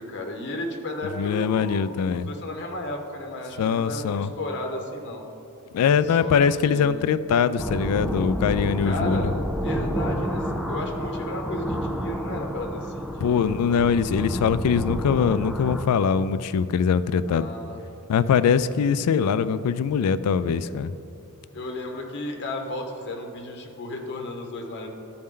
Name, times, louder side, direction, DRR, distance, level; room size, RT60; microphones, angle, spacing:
voice 1, 0.0-5.2 6.0-6.4 6.6-7.1 8.8-9.4 9.6-13.6 17.3-17.8 21.5-24.9, left 1 dB, 55° left, 2 dB, 0.9 m, -34 dB
voice 2, 1.2-2.3 3.6-4.3 5.7-9.3 13.2-17.5 18.1-20.9, left 6 dB, 80° left, 15 dB, 0.3 m, -22 dB
sound 1, 7.6-15.8, equal, ahead, 0.4 m, -29 dB
12.5 x 4.3 x 3.7 m, 2.6 s
head